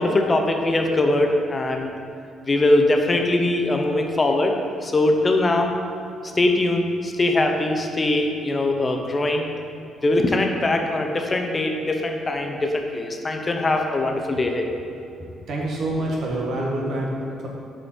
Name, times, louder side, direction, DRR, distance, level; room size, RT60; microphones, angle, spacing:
voice 1, 0.0-1.9 2.4-5.7 6.3-9.5 10.0-14.7, left 2 dB, 30° left, 3 dB, 0.7 m, -21 dB
voice 2, 15.5-17.5, right 1 dB, 65° right, -2 dB, 1.5 m, -26 dB
6.8 x 5.1 x 4.5 m, 2.7 s
cardioid pair, 90°, 0 cm